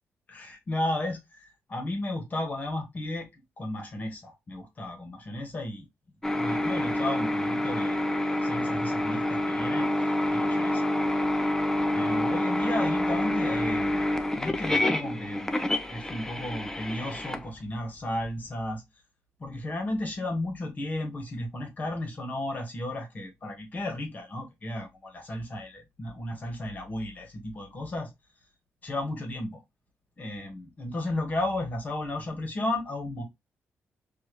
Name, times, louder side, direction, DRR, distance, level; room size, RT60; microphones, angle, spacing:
voice 1, 0.3-3.3 3.6-5.9 6.3-10.9 11.9-14.0 14.3-15.5 15.9-18.8 19.4-28.1 28.8-29.6 30.2-33.2, left 1 dB, 35° left, 1.6 m, -34 dB
sound 1, 6.2-18.3, left 1 dB, 10° left, 0.5 m, -27 dB
4.6 x 2.9 x 3.2 m
cardioid pair, 130°, 5 cm